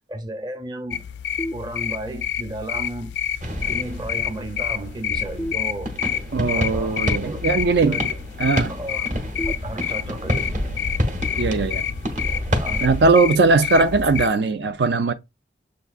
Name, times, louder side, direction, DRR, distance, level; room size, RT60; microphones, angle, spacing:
voice 1, 0.1-1.0 1.5-3.1 3.7-5.9 6.5-7.4 7.8-8.0 8.7-10.6 12.6-12.9, right 1 dB, 25° right, 0.7 m, -34 dB
sound 1, 0.9-14.3, left 9 dB, 75° left, 0.4 m, -29 dB
sound 2, 1.4-2.3 5.4-6.4 9.4-10.4, equal, 10° left, 0.4 m, -35 dB
sound 3, 3.4-13.1, equal, 45° right, 0.9 m, -29 dB
voice 2, 6.3-8.1 8.4-8.7 11.4-11.8 12.8-15.1, right 3 dB, 75° right, 0.5 m, -19 dB
6.8 x 2.6 x 2.4 m
head